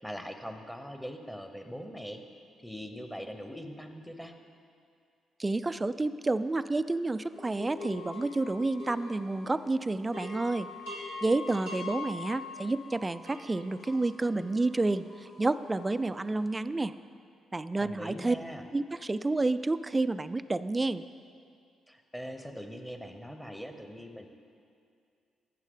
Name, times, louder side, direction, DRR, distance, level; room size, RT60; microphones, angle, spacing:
voice 1, 0.0-2.2 2.6-4.3 17.8-18.7 21.9-24.3, equal, ahead, 7 dB, 1.0 m, -41 dB
voice 2, 5.4-10.7 11.2-16.9 17.5-18.4 18.7-21.0, right 2 dB, 25° right, 13 dB, 0.3 m, -30 dB
sound 1, 7.4-9.7 10.0-16.3, left 3 dB, 80° left, 2.7 m, -43 dB
12.0 x 8.2 x 3.8 m, 2.4 s
hypercardioid pair, 40°, 0 cm